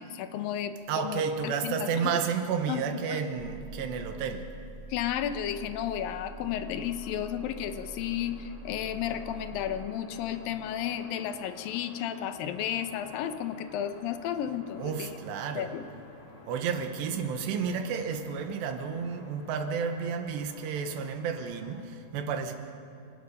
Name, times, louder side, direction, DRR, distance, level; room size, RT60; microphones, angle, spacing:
voice 1, 0.0-2.1 2.7-2.8 3.1-3.2 4.9-15.1 15.6-15.9, left 10 dB, 70° left, 2.3 m, -33 dB
voice 2, 0.9-4.5 14.8-15.7 16.5-22.5, right 6 dB, 85° right, 3.5 m, -31 dB
sound 1, 3.4-9.9, right 3 dB, 15° right, 2.3 m, -45 dB
sound 2, 4.7-21.8, left 2 dB, 30° left, 2.7 m, -52 dB
30.0 x 18.5 x 5.6 m
omnidirectional pair, 4.9 m